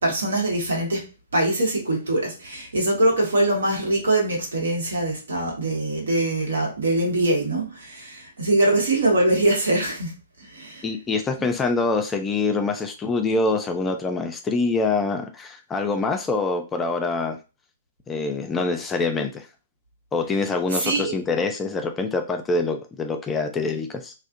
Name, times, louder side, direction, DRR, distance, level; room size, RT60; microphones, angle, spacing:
voice 1, 0.0-10.8 20.7-21.1, right 1 dB, 75° right, 1.0 m, -23 dB
voice 2, 10.8-17.4 18.1-19.3 20.1-24.1, left 3 dB, 15° left, 0.4 m, -25 dB
2.4 x 2.0 x 2.5 m
figure-of-eight pair, 115°, 0 cm